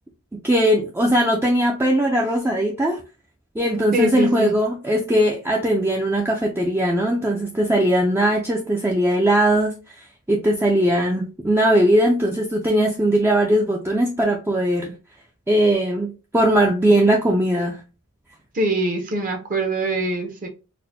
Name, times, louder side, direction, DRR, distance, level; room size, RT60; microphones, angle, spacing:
voice 1, 0.4-3.0 3.6-14.9 15.5-17.8, right 1 dB, 10° right, 0.3 m, -19 dB
voice 2, 3.9-4.5 18.5-20.5, right 1 dB, 40° right, 0.7 m, -23 dB
4.1 x 2.1 x 2.7 m
head